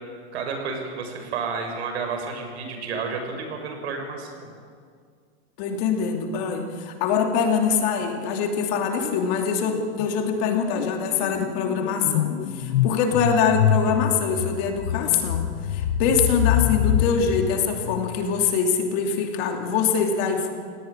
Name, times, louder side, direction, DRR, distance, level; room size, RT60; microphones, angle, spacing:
voice 1, 0.3-4.5, right 5 dB, 70° right, 4 dB, 6.7 m, -31 dB
voice 2, 5.6-20.5, left 6 dB, 40° left, 4 dB, 2.8 m, -24 dB
sound 1, 9.0-9.4 9.6-18.4, left 10 dB, 80° left, 1.4 m, -26 dB
27.5 x 18.5 x 10.0 m, 2.1 s
supercardioid pair, 175°, 34 cm